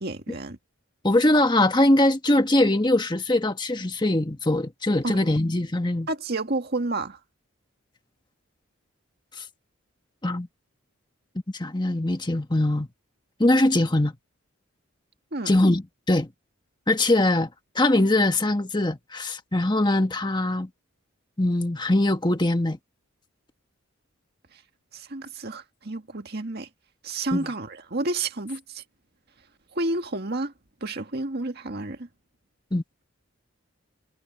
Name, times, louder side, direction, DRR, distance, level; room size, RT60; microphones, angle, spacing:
voice 1, 0.0-0.6 5.0-5.2 6.1-7.2 15.3-15.6 24.9-26.7 27.0-28.8 29.7-30.5 30.8-32.1, right 2 dB, 50° right, 1.9 m, -30 dB
voice 2, 1.0-6.1 9.4-9.5 10.2-10.5 11.5-12.9 13.4-14.1 15.5-16.3 16.9-17.5 17.7-20.7 21.4-22.8 27.3-27.5 32.7-32.8, left 1 dB, 20° left, 1.4 m, -22 dB
head